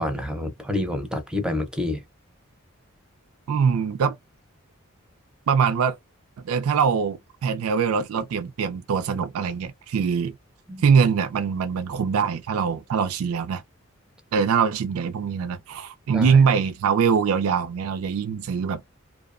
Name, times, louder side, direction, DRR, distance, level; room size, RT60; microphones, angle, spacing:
voice 1, 0.0-2.0 10.7-10.8 16.1-16.4, left 1 dB, 5° right, 0.5 m, -28 dB
voice 2, 3.5-4.2 5.5-6.0 6.4-10.4 10.8-13.6 14.3-18.8, right 6 dB, 85° right, 0.4 m, -23 dB
2.6 x 2.0 x 2.4 m
head